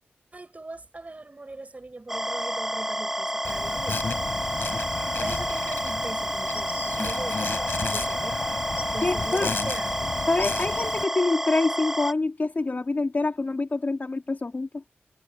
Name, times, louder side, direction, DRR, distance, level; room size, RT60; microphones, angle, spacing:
voice 1, 0.3-4.0 5.2-8.4 8.9-10.1, right 2 dB, 35° right, 7.7 m, -40 dB
sound 1, 2.1-12.1, right 1 dB, 10° right, 2.6 m, -30 dB
Insect, 3.4-11.0, left 4 dB, 65° left, 6.4 m, -33 dB
voice 2, 9.0-9.6 10.3-14.8, left 3 dB, 45° left, 2.6 m, -26 dB
cardioid pair, 55°, 4 cm